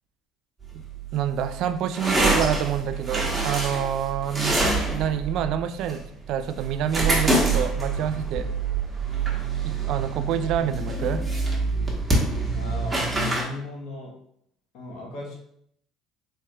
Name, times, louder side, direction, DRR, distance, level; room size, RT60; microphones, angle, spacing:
sound 1, 0.6-13.4, right 3 dB, 20° right, 1.1 m, -26 dB
voice 1, 1.1-4.6 4.9-6.0 6.3-8.5 9.6-11.2, right 9 dB, 70° right, 10 dB, 0.3 m, -27 dB
voice 2, 12.5-14.2 14.7-15.4, left 2 dB, 70° left, -1 dB, 1.1 m, -37 dB
4.2 x 3.2 x 2.3 m, 0.69 s
supercardioid pair, 85°, 0 cm